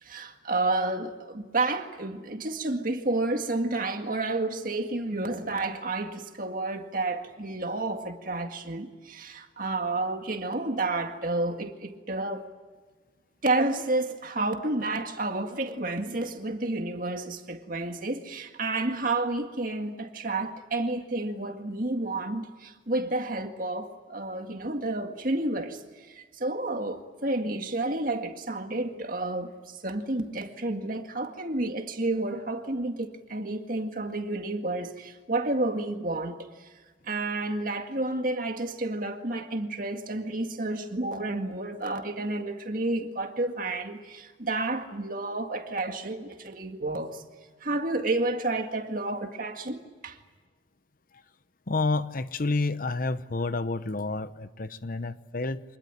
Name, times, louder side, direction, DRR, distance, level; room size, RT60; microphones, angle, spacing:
voice 1, 0.0-12.5 13.4-36.7 37.1-47.2 47.6-50.2, right 2 dB, 45° right, 2.0 m, -30 dB
voice 2, 51.7-55.6, left 3 dB, 45° left, 0.8 m, -29 dB
26.0 x 20.0 x 9.9 m
head